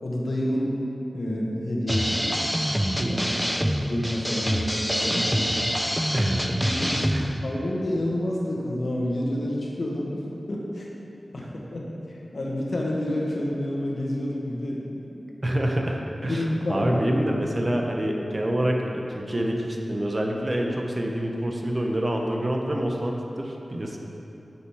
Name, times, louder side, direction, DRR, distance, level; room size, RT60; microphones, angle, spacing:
voice 1, 0.0-0.8 1.1-2.3 3.1-3.2 3.6-5.7 6.6-10.9 11.3-14.8 15.1-15.6 16.3-17.0, left 1 dB, 75° left, -3 dB, 1.4 m, -29 dB
sound 1, 1.9-7.4, equal, ahead, 0.4 m, -26 dB
voice 2, 6.1-6.6 7.1-7.3 11.4-11.5 15.4-16.4 16.7-24.0, right 1 dB, 35° right, 1 dB, 1.0 m, -27 dB
7.3 x 6.8 x 4.8 m, 2.9 s
wide cardioid pair, 55°, 0 cm